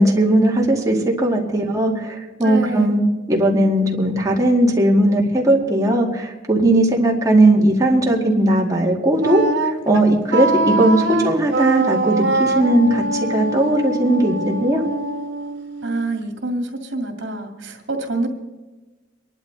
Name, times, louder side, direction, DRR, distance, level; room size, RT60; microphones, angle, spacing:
voice 1, 0.0-3.0 3.3-14.8, right 1 dB, 20° right, -1 dB, 2.1 m, -18 dB
voice 2, 2.4-3.0 15.8-18.3, right 2 dB, 70° right, 3 dB, 2.3 m, -26 dB
Wind instrument woodwind instrument, 9.2-16.1, right 2 dB, 85° right, 1.2 m, -23 dB
25.0 x 11.5 x 4.0 m, 1.2 s
head